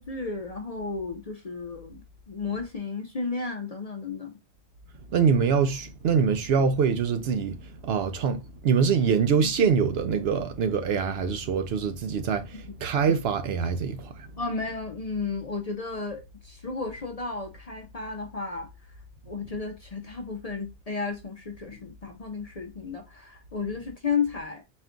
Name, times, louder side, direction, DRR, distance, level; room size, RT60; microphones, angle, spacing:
voice 1, 0.0-4.4 9.0-9.1 12.7-12.8 14.4-18.9 19.3-24.6, left 4 dB, 45° left, 0.5 m, -33 dB
voice 2, 5.1-14.3, right 6 dB, 65° right, 0.7 m, -24 dB
4.3 x 2.3 x 3.6 m
omnidirectional pair, 1.2 m